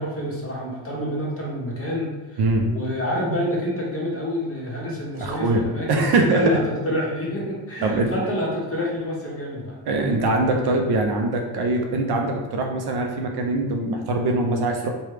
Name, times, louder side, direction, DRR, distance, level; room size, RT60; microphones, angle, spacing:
voice 1, 0.0-9.8, left 1 dB, 30° left, -4 dB, 1.1 m, -28 dB
voice 2, 2.4-2.7 5.2-6.6 7.8-8.1 9.9-14.9, right 2 dB, 55° right, 2 dB, 0.5 m, -22 dB
3.1 x 2.3 x 3.2 m, 1.2 s
cardioid pair, 85°, 48 cm